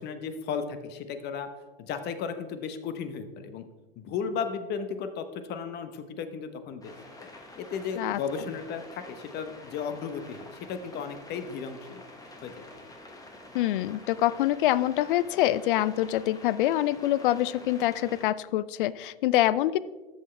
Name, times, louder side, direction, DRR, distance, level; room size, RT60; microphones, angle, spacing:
voice 1, 0.0-1.5 1.8-3.6 4.0-6.9 7.2-7.3 7.6-12.0 12.4-12.7, left 6 dB, 35° left, 9 dB, 0.9 m, -35 dB
sound 1, 6.8-18.3, left 2 dB, 10° left, 1.3 m, -48 dB
voice 2, 13.5-19.8, left 14 dB, 60° left, 18 dB, 0.5 m, -25 dB
13.5 x 5.5 x 3.3 m, 1.2 s
hypercardioid pair, 105°, 29 cm